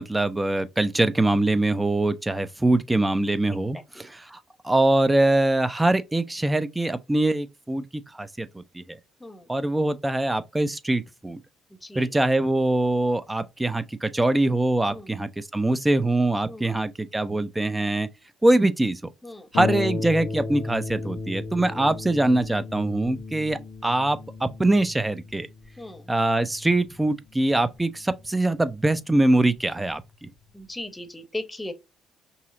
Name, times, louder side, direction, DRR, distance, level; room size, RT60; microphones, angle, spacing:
voice 1, 0.0-4.4 4.6-7.8 8.2-8.5 8.7-8.8 9.5-11.4 12.0-18.1 18.4-19.0 19.5-25.5 26.1-30.0, right 2 dB, 15° right, 0.5 m, -23 dB
voice 2, 11.7-12.1 14.9-15.1 16.5-16.7 19.2-19.5 21.8-21.9 23.6-23.7 25.8-26.1 30.5-31.7, left 1 dB, 15° left, 0.9 m, -38 dB
Harp, 19.5-28.7 29.6-29.7 30.1-30.2, left 3 dB, 65° left, 0.8 m, -35 dB
5.5 x 2.0 x 2.6 m
hypercardioid pair, 55°, 0 cm